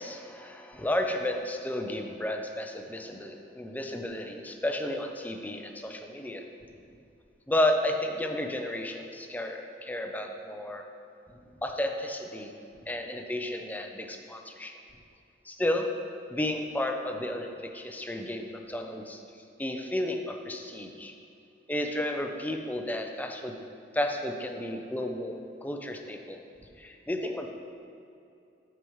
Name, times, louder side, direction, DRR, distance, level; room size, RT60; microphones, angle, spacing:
voice 1, 0.0-6.4 7.5-10.8 11.6-12.5 12.9-14.7 15.5-15.9 16.3-19.2 19.6-21.1 21.7-23.5 23.9-27.5, left 1 dB, 10° left, 4 dB, 0.5 m, -32 dB
13.5 x 4.8 x 3.1 m, 2.7 s
head